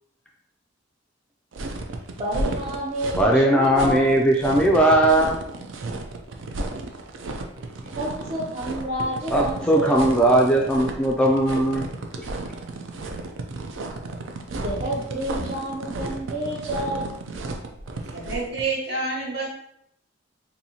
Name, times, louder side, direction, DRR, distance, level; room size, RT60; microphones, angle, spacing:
sound 1, 1.5-18.6, right 2 dB, 80° right, 0.5 m, -33 dB
voice 1, 2.2-4.2 7.9-10.4 14.6-17.1, equal, 35° right, -6 dB, 0.6 m, -29 dB
voice 2, 3.2-5.4 9.3-11.9, right 1 dB, 5° left, -1 dB, 0.3 m, -19 dB
voice 3, 18.1-19.5, right 3 dB, 60° right, -5 dB, 1.5 m, -28 dB
4.1 x 2.7 x 2.8 m, 0.75 s
head